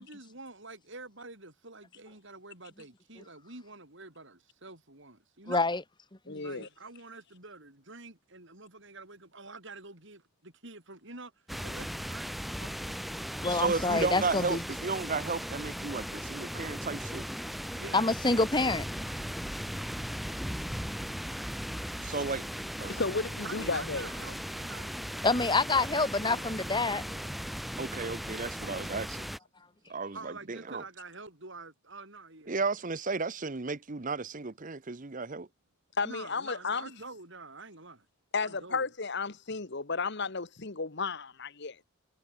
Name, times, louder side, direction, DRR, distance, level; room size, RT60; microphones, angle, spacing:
voice 1, 0.0-5.7 6.4-11.3 11.6-13.0 13.3-14.0 17.7-18.1 22.4-22.7 23.4-25.6 25.9-27.3 30.1-32.6 36.0-38.1 38.4-38.9, right 3 dB, 60° right, 6.2 m, -48 dB
voice 2, 5.5-5.8 6.3-6.4 13.4-14.6 17.9-18.9 25.2-27.0, left 3 dB, 20° left, 1.8 m, -27 dB
voice 3, 6.3-6.7 22.9-24.1 36.0-36.9 38.3-41.8, left 4 dB, 55° left, 1.4 m, -33 dB
sound 1, 11.5-29.4, equal, ahead, 1.7 m, -38 dB
voice 4, 13.6-17.3 22.0-22.5 22.8-23.0 27.8-29.3 29.9-30.8 32.5-35.5, right 4 dB, 40° right, 0.9 m, -34 dB
head